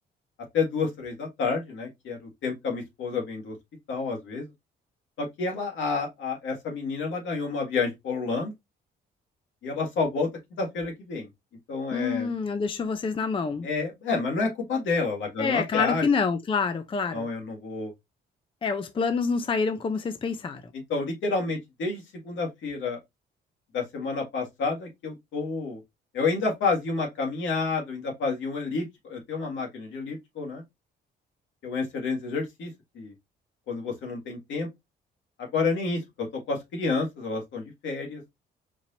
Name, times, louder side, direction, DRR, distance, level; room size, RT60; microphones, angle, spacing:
voice 1, 0.5-3.5 3.9-4.5 5.2-8.5 9.6-10.3 10.6-11.3 11.7-12.3 13.6-16.1 17.1-17.9 20.9-23.0 23.7-25.8 26.1-30.6 31.6-33.1 33.7-34.7 35.4-38.2, left 4 dB, 75° left, 1.8 m, -29 dB
voice 2, 11.9-13.7 15.4-17.3 18.6-20.6, left 5 dB, 25° left, 0.5 m, -27 dB
4.5 x 2.7 x 2.8 m
cardioid pair, 90°, 20 cm